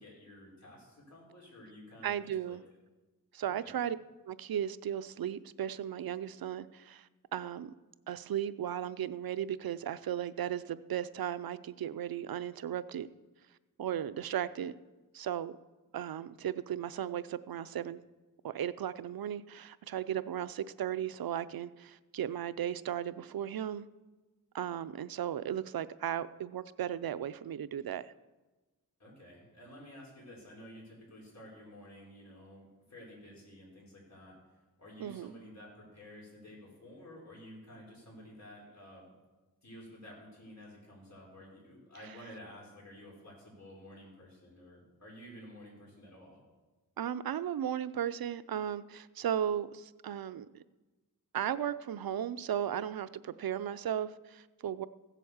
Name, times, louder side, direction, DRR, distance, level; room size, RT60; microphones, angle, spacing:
voice 1, 0.0-2.6 3.4-3.8 29.0-34.4 34.8-39.1 39.6-46.4, equal, 50° left, 5.2 m, -52 dB
voice 2, 2.0-2.6 3.3-4.0 4.2-7.7 8.1-13.1 13.8-14.7 15.1-15.6 15.9-18.0 18.4-23.9 24.5-28.1 35.0-35.3 47.0-50.6 51.3-54.9, right 10 dB, 85° right, 0.5 m, -36 dB
15.5 x 8.2 x 7.1 m
wide cardioid pair, 100°, 35 cm